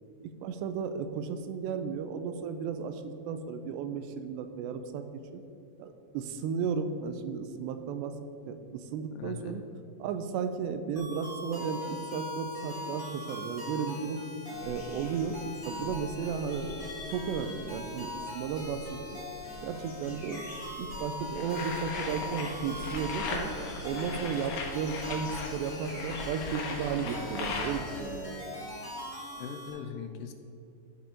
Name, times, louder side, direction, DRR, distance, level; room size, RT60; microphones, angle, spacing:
voice 1, 0.2-5.1 5.3-5.4 5.8-8.2 8.5-9.6 10.0-14.2 14.6-15.4 15.6-16.8 17.1-19.0 19.6-23.5 23.8-28.6, right 6 dB, 90° right, 8 dB, 2.8 m, -34 dB
voice 2, 9.2-9.6 29.4-30.3, left 7 dB, 85° left, 6 dB, 2.8 m, -40 dB
sound 1, 10.9-29.7, left 2 dB, 30° left, 0.6 m, -42 dB
sound 2, 14.5-27.8, left 3 dB, 50° left, 3.0 m, -48 dB
sound 3, 21.4-28.1, left 3 dB, 65° left, 2.4 m, -38 dB
12.5 x 4.9 x 5.2 m, 2.6 s
omnidirectional pair, 4.9 m